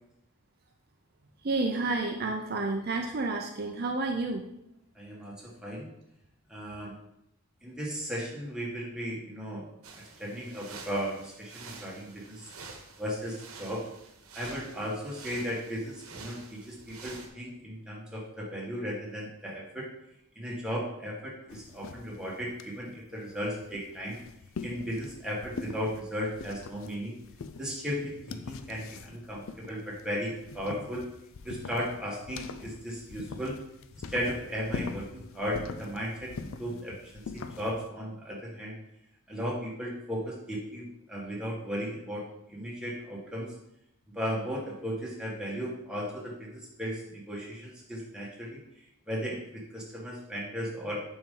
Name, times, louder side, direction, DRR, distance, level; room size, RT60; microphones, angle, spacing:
voice 1, 1.4-4.5, right 3 dB, 45° right, 2 dB, 0.5 m, -30 dB
voice 2, 4.9-5.9 6.5-6.9 7.6-9.7 9.9-12.5 13.0-13.8 14.3-19.9 20.3-24.2 24.6-27.1 27.6-31.0 31.4-33.6 33.9-38.7 39.3-43.5 44.1-48.6 49.1-51.0, equal, 5° right, -5 dB, 1.6 m, -36 dB
sound 1, 9.8-17.3, right 4 dB, 80° right, 1.1 m, -48 dB
sound 2, 21.5-37.9, left 4 dB, 65° left, 0.4 m, -43 dB
7.2 x 5.4 x 3.8 m, 0.81 s
head